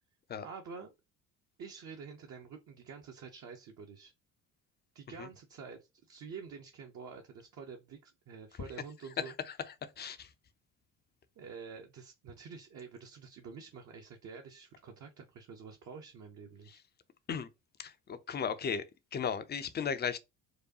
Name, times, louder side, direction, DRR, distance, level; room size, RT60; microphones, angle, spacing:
voice 1, 0.4-0.9 1.6-4.1 4.9-9.3 11.4-16.8, right 5 dB, 35° right, 0.7 m, -48 dB
voice 2, 10.0-10.3 17.3-17.5 17.8-18.8 19.1-20.2, left 6 dB, 20° left, 0.5 m, -35 dB
4.7 x 2.2 x 2.8 m
hypercardioid pair, 60°, 48 cm